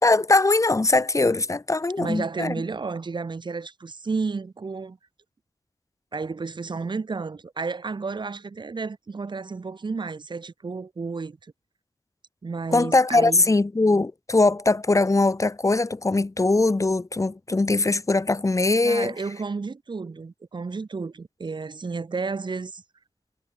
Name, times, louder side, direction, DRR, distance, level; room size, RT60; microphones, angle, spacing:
voice 1, 0.0-2.5 12.7-19.1, left 2 dB, 40° left, 3.9 m, -21 dB
voice 2, 2.0-5.0 6.1-11.4 12.4-13.4 18.8-22.8, right 4 dB, 65° right, 2.8 m, -32 dB
wide cardioid pair, 85°, 8 cm